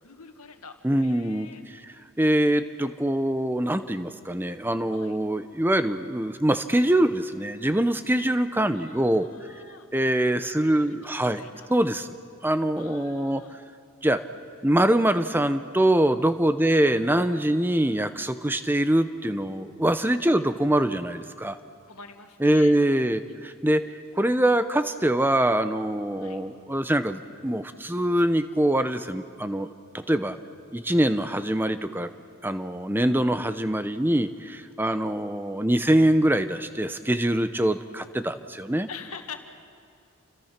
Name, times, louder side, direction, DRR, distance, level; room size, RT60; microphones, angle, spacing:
voice 1, 0.0-1.9 4.9-5.2 8.7-9.9 10.6-11.7 12.8-13.6 16.6-16.9 20.2-20.4 21.9-22.8 26.2-26.4 34.8-35.1 38.9-39.4, left 5 dB, 85° left, 5 dB, 1.9 m, -45 dB
voice 2, 0.8-9.3 9.9-11.4 11.7-12.2 12.4-13.4 14.0-14.2 14.6-21.6 22.4-29.7 29.9-30.4 30.7-32.1 32.4-38.9, right 1 dB, 10° right, 10 dB, 0.7 m, -24 dB
29.5 x 24.5 x 5.9 m, 2.4 s
head